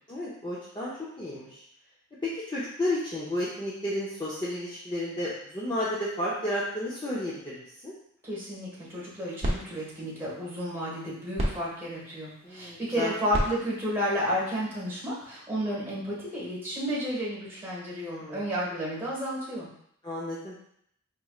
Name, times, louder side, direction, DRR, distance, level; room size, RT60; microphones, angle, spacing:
voice 1, 0.1-1.6 2.2-7.9 12.4-13.1 18.1-18.5 20.0-20.6, left 1 dB, 20° left, -7 dB, 0.6 m, -32 dB
voice 2, 8.2-19.7, equal, 10° right, -6 dB, 1.4 m, -32 dB
sound 1, 8.8-15.3, equal, 30° right, 0.7 m, -36 dB
4.6 x 3.0 x 2.3 m, 0.70 s
head